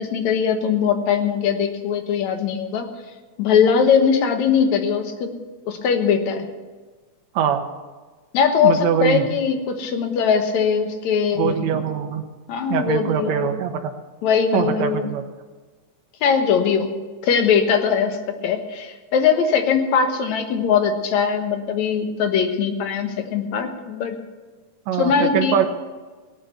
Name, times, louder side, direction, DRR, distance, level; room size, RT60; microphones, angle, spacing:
voice 1, 0.0-2.9 3.4-5.4 5.7-6.5 8.3-11.9 12.5-13.5 14.2-15.1 16.2-16.9 17.2-18.2 18.4-24.2 25.0-25.6, left 6 dB, 70° left, 6 dB, 2.5 m, -20 dB
voice 2, 8.6-9.3 11.3-12.2 12.7-13.9 14.5-15.2 24.9-25.7, right 8 dB, 70° right, 4 dB, 2.2 m, -22 dB
17.5 x 9.3 x 6.7 m, 1.4 s
omnidirectional pair, 3.5 m